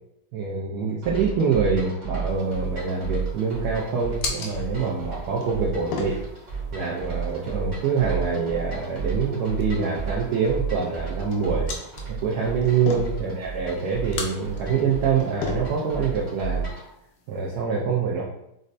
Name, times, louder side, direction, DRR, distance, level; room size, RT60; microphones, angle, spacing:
voice 1, 0.3-6.2 6.7-11.7 12.1-16.7 17.3-18.2, right 5 dB, 70° right, -3 dB, 1.0 m, -25 dB
sound 1, 1.0-16.9, right 5 dB, 35° right, 0.7 m, -33 dB
sound 2, 2.3-17.6, left 4 dB, 85° left, 1.3 m, -39 dB
5.1 x 2.1 x 2.5 m, 0.81 s
omnidirectional pair, 2.0 m